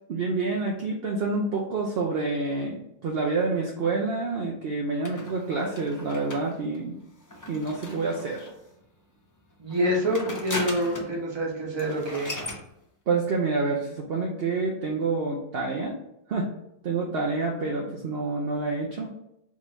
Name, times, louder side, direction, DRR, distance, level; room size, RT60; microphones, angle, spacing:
voice 1, 0.1-7.0 7.5-8.5 13.1-15.9 16.3-16.5 16.8-19.1, right 3 dB, 55° right, -1 dB, 0.8 m, -28 dB
sound 1, 5.0-8.7 9.7-11.2 11.5-11.6 11.8-12.6, left 1 dB, 25° left, 0.4 m, -38 dB
voice 2, 9.6-12.3, equal, 20° right, -3 dB, 1.0 m, -27 dB
3.7 x 3.1 x 3.9 m, 0.82 s
omnidirectional pair, 1.3 m